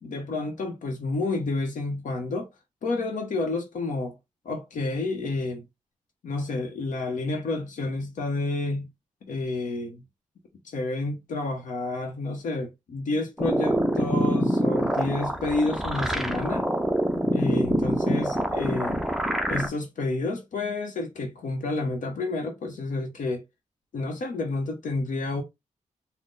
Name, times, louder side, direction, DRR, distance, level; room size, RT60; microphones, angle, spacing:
voice 1, 0.0-2.5 2.8-4.2 4.4-5.6 6.2-8.9 9.2-10.0 10.6-16.7 17.3-19.0 19.5-23.4 23.9-25.4, left 2 dB, 80° left, 0.8 m, -30 dB
sound 1, 13.4-19.7, equal, ahead, 0.4 m, -25 dB
3.8 x 2.1 x 3.7 m
wide cardioid pair, 175°, 13 cm